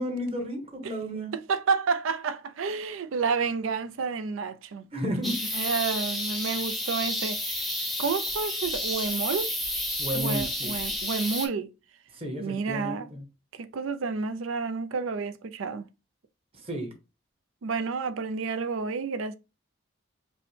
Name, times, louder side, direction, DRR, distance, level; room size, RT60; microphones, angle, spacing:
voice 1, 0.0-1.3 4.9-5.3 10.0-10.8 12.2-13.2 16.6-16.9, equal, 30° right, 1.0 m, -32 dB
voice 2, 1.3-4.9 5.5-7.7 8.0-9.5 10.1-11.7 12.4-13.1 13.5-15.9 17.6-19.4, right 5 dB, 90° right, 0.4 m, -30 dB
sound 1, 5.2-11.5, left 1 dB, ahead, 0.6 m, -31 dB
5.3 x 2.1 x 3.2 m
head